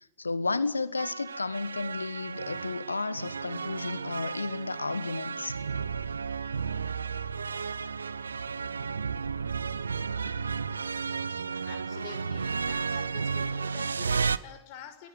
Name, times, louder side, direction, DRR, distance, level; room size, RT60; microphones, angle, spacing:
voice 1, 0.2-5.6, left 3 dB, 80° left, 1.3 m, -32 dB
sound 1, 1.0-14.4, right 5 dB, 75° right, 1.0 m, -33 dB
voice 2, 11.6-15.1, left 10 dB, 45° left, 6.4 m, -47 dB
30.0 x 19.5 x 9.5 m
figure-of-eight pair, 90°, 0 cm